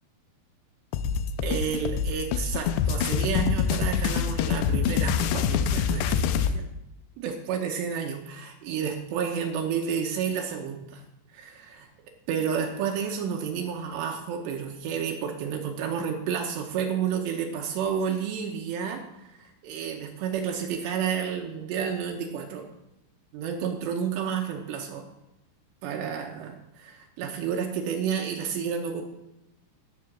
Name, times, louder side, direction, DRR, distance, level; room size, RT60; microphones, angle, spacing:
sound 1, 0.9-6.5, left 7 dB, 85° left, 2.7 m, -25 dB
voice 1, 1.4-6.6 7.2-11.0 11.3-11.9 12.3-22.7 23.3-25.0 25.8-29.1, right 7 dB, 80° right, 2 dB, 3.0 m, -31 dB
14.5 x 5.6 x 6.3 m, 0.92 s
omnidirectional pair, 5.1 m